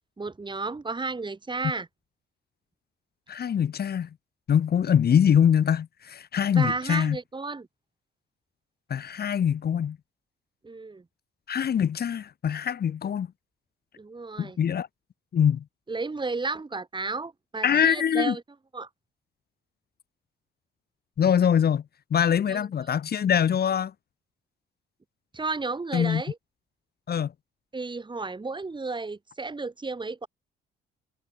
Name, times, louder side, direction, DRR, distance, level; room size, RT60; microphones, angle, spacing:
voice 1, 0.2-1.9 6.5-7.7 10.6-11.0 14.0-14.6 15.9-18.4 18.7-18.9 22.5-22.6 25.3-26.4 27.7-30.3, right 3 dB, 25° right, 4.2 m, -32 dB
voice 2, 3.3-4.1 4.5-7.2 8.9-10.0 11.5-13.3 14.4-14.9 15.3-15.6 17.6-18.4 21.2-21.8 22.1-23.9 25.9-26.2 27.1-27.3, left 8 dB, 50° left, 1.7 m, -23 dB
cardioid pair, 90°, 20 cm